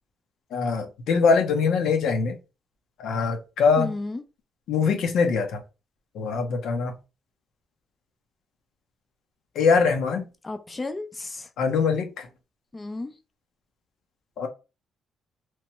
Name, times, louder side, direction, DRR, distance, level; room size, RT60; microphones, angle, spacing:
voice 1, 0.5-2.4 3.0-3.9 4.7-5.6 6.1-6.9 9.6-10.3 11.6-12.3 14.4-14.5, left 5 dB, 80° left, 0.7 m, -23 dB
voice 2, 3.8-4.2 10.4-11.5 12.7-13.1, left 2 dB, 25° left, 0.4 m, -33 dB
3.0 x 2.2 x 2.9 m
cardioid pair, 90°, 0 cm